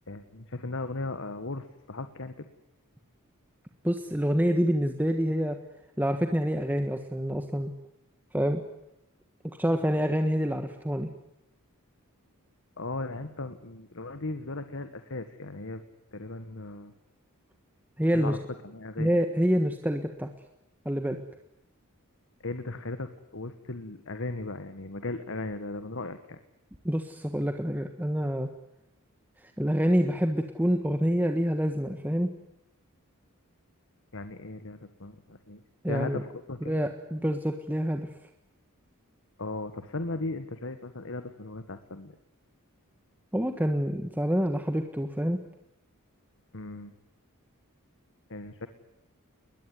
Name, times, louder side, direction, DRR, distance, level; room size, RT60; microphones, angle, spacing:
voice 1, 0.1-2.5 12.8-15.8 16.1-16.9 18.1-18.4 18.6-19.2 22.4-26.4 34.1-36.8 39.4-42.2 46.5-46.9 48.3-48.7, left 2 dB, 60° left, 9 dB, 1.7 m, -37 dB
voice 2, 3.8-5.6 6.0-7.7 8.3-8.6 9.6-11.1 18.0-18.4 19.0-20.3 20.8-21.2 26.8-28.5 29.4-32.3 35.8-36.2 36.7-38.1 43.3-45.4, equal, 10° right, 6 dB, 1.5 m, -27 dB
21.5 x 21.5 x 9.6 m, 0.84 s
head